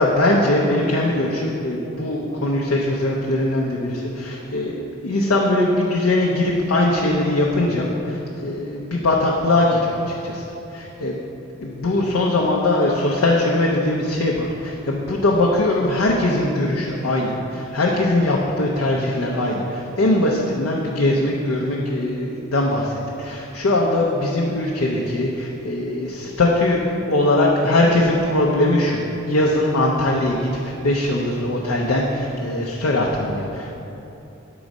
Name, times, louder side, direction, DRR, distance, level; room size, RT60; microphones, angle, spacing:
voice 1, 0.0-10.4 10.7-11.2 11.6-29.0 29.3-30.5 30.8-33.7, left 1 dB, 85° left, -2 dB, 0.6 m, -21 dB
6.1 x 3.9 x 5.2 m, 2.9 s
head